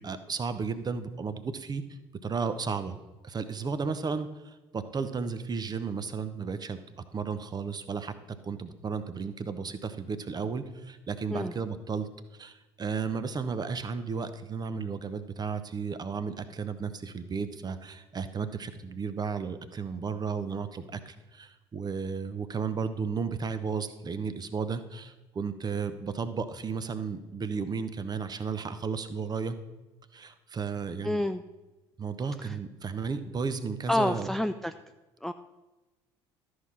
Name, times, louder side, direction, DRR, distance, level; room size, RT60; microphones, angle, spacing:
voice 1, 0.0-1.8 2.2-3.0 3.2-29.6 30.1-31.2 32.0-34.3, right 5 dB, 25° right, 12 dB, 0.8 m, -34 dB
voice 2, 31.0-31.4 32.4-32.6 33.9-34.7 35.2-35.3, left 1 dB, ahead, 9 dB, 0.3 m, -28 dB
13.0 x 4.8 x 5.6 m, 1.1 s
figure-of-eight pair, 60°, 15 cm